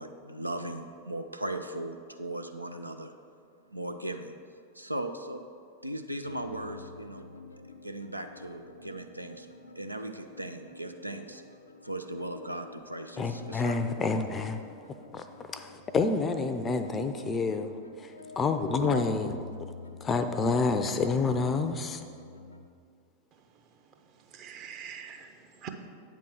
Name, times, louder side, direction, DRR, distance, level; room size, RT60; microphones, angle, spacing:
voice 1, 0.0-3.1 3.7-4.3 4.7-5.4 5.8-7.3 7.7-9.5 9.8-11.4 11.8-14.0 18.8-19.1, right 1 dB, 85° right, 6 dB, 0.4 m, -38 dB
sound 1, 6.2-22.7, left 3 dB, 80° left, 0.4 m, -49 dB
voice 2, 13.2-14.6 15.1-15.2 15.5-19.3 20.0-22.0, left 4 dB, 20° left, 8 dB, 0.5 m, -28 dB
voice 3, 23.3-25.7, right 7 dB, 35° right, 5 dB, 0.7 m, -46 dB
8.7 x 3.7 x 6.1 m, 2.3 s
figure-of-eight pair, 90°, 0 cm